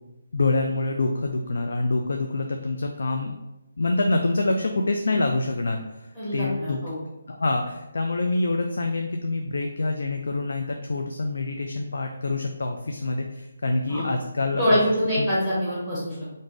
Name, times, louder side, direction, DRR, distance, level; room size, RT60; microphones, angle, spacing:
voice 1, 0.3-3.3 3.8-6.1 6.3-6.8 7.3-14.6 15.2-15.3, left 2 dB, 70° left, 3 dB, 0.4 m, -26 dB
voice 2, 6.2-7.0 13.9-14.1 14.5-16.2, equal, 20° left, -11 dB, 1.2 m, -24 dB
3.8 x 2.6 x 3.7 m, 0.98 s
hypercardioid pair, 170°, 0 cm